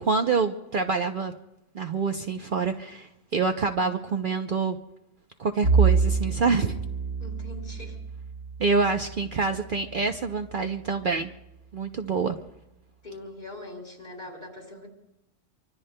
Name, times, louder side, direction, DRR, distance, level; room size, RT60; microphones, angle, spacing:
voice 1, 0.0-1.3 1.7-4.8 5.4-6.8 8.6-11.3 11.7-12.4, right 4 dB, 50° right, 5 dB, 0.8 m, -26 dB
Bowed string instrument, 5.6-10.2, right 5 dB, 75° right, 1.5 m, -27 dB
voice 2, 7.2-8.0 13.0-14.9, left 1 dB, 40° left, 0 dB, 3.8 m, -42 dB
26.5 x 24.5 x 2.2 m, 0.88 s
omnidirectional pair, 1.2 m